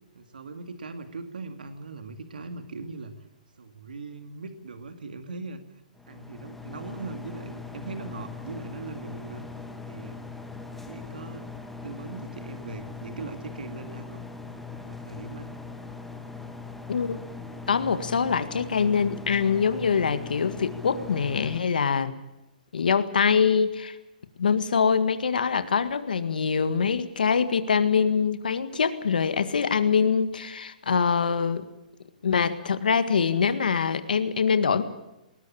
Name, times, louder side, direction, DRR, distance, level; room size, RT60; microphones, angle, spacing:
voice 1, 0.1-3.3 3.6-5.6 6.1-9.5 9.9-10.2 10.9-11.5 11.8-14.2 14.8-15.6, right 3 dB, 90° right, 8 dB, 2.2 m, -40 dB
sound 1, 5.9-21.6, left 4 dB, 5° left, 1.7 m, -40 dB
voice 2, 17.7-22.1 22.7-24.0 24.4-31.7 32.2-34.8, left 6 dB, 85° left, 11 dB, 1.8 m, -24 dB
20.5 x 19.5 x 8.6 m, 0.94 s
hypercardioid pair, 145°, 5 cm